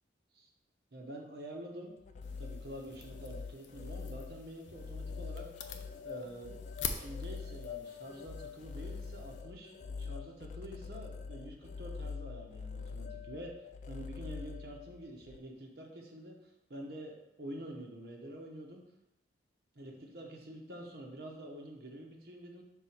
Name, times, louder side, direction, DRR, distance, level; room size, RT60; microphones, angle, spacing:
voice 1, 0.9-1.9 2.4-5.8 6.0-6.5 7.0-9.7 10.0-13.5 13.9-18.8 19.7-22.6, right 1 dB, 60° right, 0 dB, 1.0 m, -47 dB
sound 1, 1.9-15.4, left 5 dB, 40° left, 0.4 m, -44 dB
sound 2, 2.2-9.4, left 6 dB, 85° left, 0.6 m, -46 dB
5.5 x 4.1 x 4.5 m, 0.83 s
head